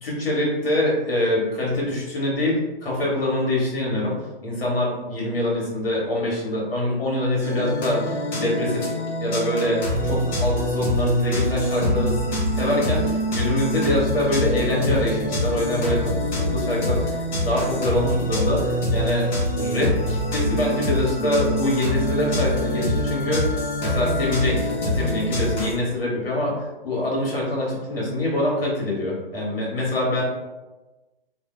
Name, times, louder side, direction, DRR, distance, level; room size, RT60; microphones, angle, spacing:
voice 1, 0.0-4.2 4.4-8.9 9.2-12.2 12.5-19.3 19.6-23.4 23.8-30.2, left 1 dB, 70° left, -4 dB, 1.3 m, -24 dB
sound 1, 7.4-25.7, equal, 50° left, 1.2 m, -25 dB
Wind instrument woodwind instrument, 21.1-24.5, left 2 dB, 10° right, 0.5 m, -38 dB
2.7 x 2.3 x 3.2 m, 1.1 s
figure-of-eight pair, 125°, 30 cm